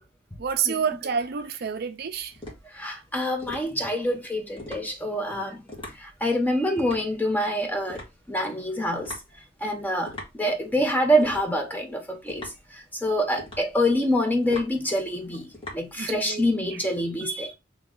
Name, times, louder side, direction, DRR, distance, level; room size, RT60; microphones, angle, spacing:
voice 1, 0.4-2.4 16.0-16.8 17.2-17.3, right 7 dB, 55° right, 0.4 m, -29 dB
sound 1, 0.9-16.5, left 1 dB, 30° left, 1.6 m, -44 dB
voice 2, 2.7-5.6 6.0-8.0 8.3-9.1 9.6-15.5 15.7-17.5, equal, 10° left, 0.8 m, -26 dB
3.1 x 3.1 x 3.7 m
head